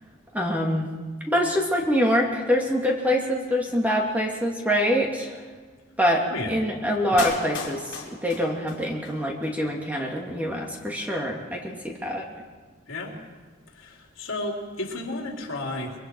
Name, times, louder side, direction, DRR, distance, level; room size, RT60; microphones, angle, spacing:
voice 1, 0.3-0.9 1.3-5.4 6.0-12.3, equal, 10° right, -1 dB, 2.4 m, -25 dB
voice 2, 6.3-6.6 7.0-7.3 12.9-13.2 13.7-15.9, left 2 dB, 75° left, 0 dB, 3.6 m, -33 dB
Clapping, 7.2-9.2 9.4-9.5, left 5 dB, 60° left, 3.4 m, -34 dB
24.5 x 23.0 x 4.7 m, 1.4 s
head